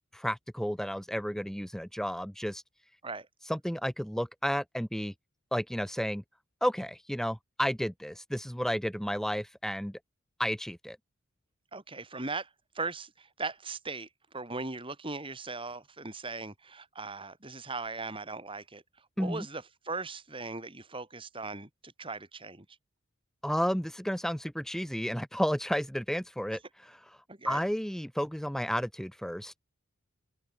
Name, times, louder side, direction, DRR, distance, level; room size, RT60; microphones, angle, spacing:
voice 1, 0.0-2.6 3.4-5.1 5.5-6.2 6.6-10.0 10.4-11.0 19.2-19.5 23.4-27.2 27.5-29.6, equal, ahead, 2.1 m, -32 dB
voice 2, 11.7-12.5 12.7-18.8 19.2-22.7 27.3-27.6, right 3 dB, 25° right, 3.7 m, -39 dB
head